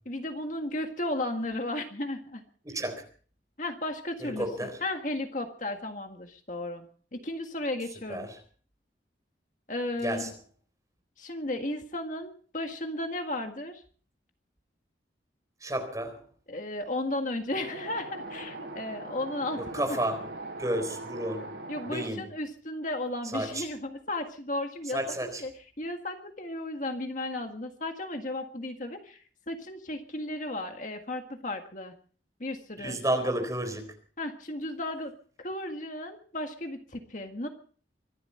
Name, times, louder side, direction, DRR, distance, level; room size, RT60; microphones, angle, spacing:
voice 1, 0.1-2.4 3.6-8.3 9.7-10.3 11.2-13.8 16.5-19.6 20.7-20.8 21.7-25.5 25.8-31.9 32.4-33.0 34.2-35.1 35.4-37.5, left 1 dB, 45° left, 1.8 m, -34 dB
voice 2, 2.6-3.0 4.2-4.8 8.1-8.4 10.0-10.3 15.6-16.2 19.6-20.3 20.6-21.5 21.9-22.3 23.3-23.7 24.9-25.4 32.8-33.9, right 1 dB, 20° right, 4.1 m, -31 dB
Wind, 17.5-22.1, right 2 dB, 80° right, 7.4 m, -40 dB
24.5 x 12.5 x 4.4 m
head